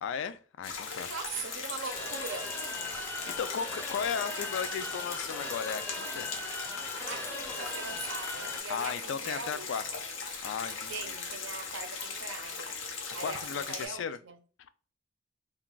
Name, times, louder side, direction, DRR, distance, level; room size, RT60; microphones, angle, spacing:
voice 1, 0.0-1.1 3.3-6.3 8.7-9.9 10.4-11.1 13.2-14.2, left 7 dB, 70° left, 0.3 m, -35 dB
sound 1, 0.6-13.9, left 5 dB, 90° left, 0.8 m, -39 dB
voice 2, 1.0-2.6 7.1-10.0 10.9-12.8 13.1-14.4, right 5 dB, 85° right, 0.6 m, -41 dB
sound 2, 1.8-8.6, left 2 dB, 10° left, 0.5 m, -40 dB
2.3 x 2.3 x 3.7 m
head